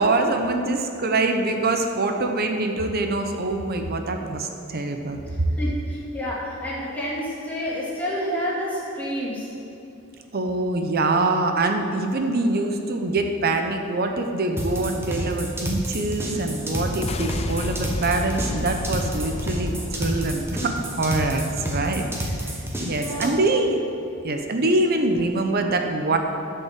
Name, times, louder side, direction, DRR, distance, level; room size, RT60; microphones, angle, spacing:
voice 1, 0.0-5.2 10.3-22.0 22.8-23.8 24.2-26.2, right 2 dB, 50° right, 5 dB, 0.8 m, -24 dB
voice 2, 5.5-9.5 23.0-23.4, equal, 10° left, -7 dB, 2.6 m, -29 dB
sound 1, 14.6-23.3, equal, 10° right, 1.4 m, -29 dB
sound 2, 16.9-21.4, left 2 dB, 30° left, 0.4 m, -32 dB
11.0 x 5.5 x 7.5 m, 2.8 s
head